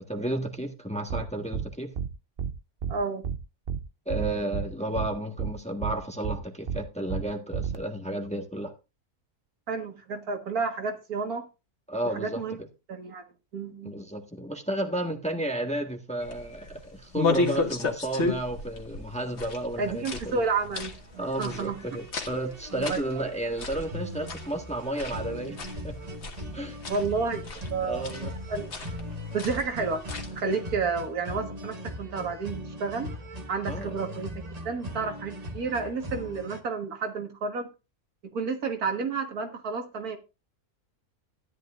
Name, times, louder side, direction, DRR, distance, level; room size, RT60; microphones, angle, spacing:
voice 1, 0.0-1.9 4.0-8.7 11.9-12.4 13.8-20.4 21.2-25.6 25.8-26.0 26.5-26.8 27.8-28.3 33.7-33.9, right 1 dB, 5° left, 1.3 m, -32 dB
sound 1, 1.1-1.2 1.5-1.7 2.0-2.1 2.4-2.5 2.8-2.9 3.2-3.4 3.7-3.8 4.1-4.7 5.0-5.1 5.4-5.5 5.8-5.9 6.2-6.4 6.7-6.8 7.1-7.2 7.5-7.8, right 6 dB, 50° right, 0.8 m, -30 dB
voice 2, 2.9-3.2 9.7-11.5 12.0-12.6 12.9-13.2 13.5-13.9 19.8-21.8 22.7-23.3 26.9-27.4 27.7-28.0 28.5-28.7 29.3-30.0 30.3-33.1 33.5-37.7 38.3-40.2, right 4 dB, 80° right, 2.0 m, -31 dB
sound 2, 16.2-30.4, left 3 dB, 50° left, 1.7 m, -34 dB
sound 3, 19.7-36.6, equal, 30° right, 1.2 m, -40 dB
13.5 x 11.0 x 2.5 m
omnidirectional pair, 1.5 m